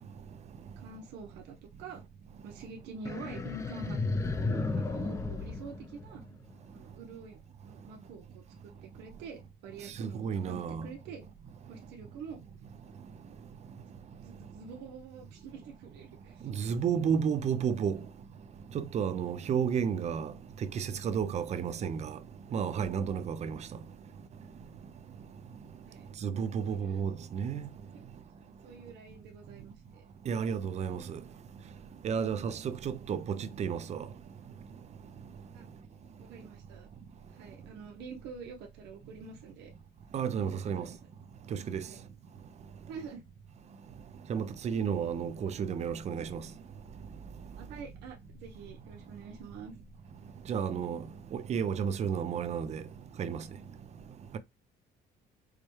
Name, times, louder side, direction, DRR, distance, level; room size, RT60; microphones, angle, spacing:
voice 1, 0.8-2.0 2.4-6.2 6.7-7.4 7.6-11.2 11.7-12.4 13.3-13.4 14.2-16.5 22.5-22.6 25.8-26.0 26.6-27.1 27.9-28.0 28.6-30.0 35.5-35.7 36.2-36.9 37.3-39.7 40.5-40.9 41.8-42.0 42.9-43.2 44.7-44.9 47.5-49.7, right 5 dB, 90° right, 0.8 m, -47 dB
sound 1, 3.0-6.5, left 3 dB, 15° left, 0.5 m, -34 dB
voice 2, 10.0-10.9 16.4-18.0 18.7-20.3 20.6-22.2 22.5-23.6 26.2-27.6 30.3-31.2 32.0-34.1 40.1-40.9 41.5-41.8 44.3-46.4 50.5-51.0 51.3-52.8 53.2-53.4, right 7 dB, 40° right, 0.5 m, -32 dB
4.7 x 2.2 x 3.1 m
cardioid pair, 110°, 17 cm